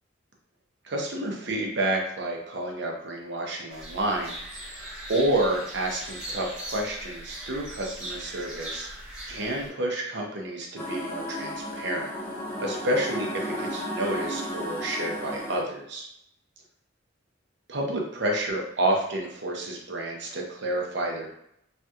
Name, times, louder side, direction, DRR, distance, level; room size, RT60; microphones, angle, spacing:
voice 1, 0.8-4.4 4.6-8.9 9.3-12.1 12.6-16.1 17.7-21.3, right 1 dB, 60° right, 0 dB, 0.7 m, -29 dB
sound 1, 3.7-9.7, right 1 dB, 5° right, 0.8 m, -39 dB
sound 2, 10.8-15.6, equal, 10° left, 0.4 m, -34 dB
3.2 x 2.8 x 2.3 m, 0.75 s
head